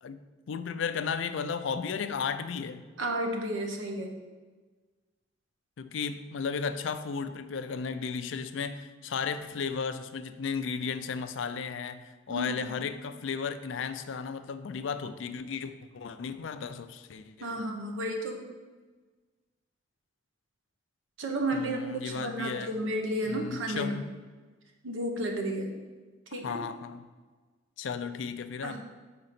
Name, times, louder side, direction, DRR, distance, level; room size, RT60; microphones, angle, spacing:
voice 1, 0.0-2.8 5.8-17.6 21.5-22.7 23.3-24.1 26.3-27.1 27.8-28.8, left 5 dB, 70° left, 11 dB, 0.4 m, -34 dB
voice 2, 3.0-4.1 12.3-12.8 17.4-18.4 21.2-24.0 24.8-25.7 26.3-26.6 28.6-28.8, right 1 dB, 75° right, 2 dB, 1.0 m, -32 dB
5.1 x 3.9 x 5.8 m, 1.3 s
head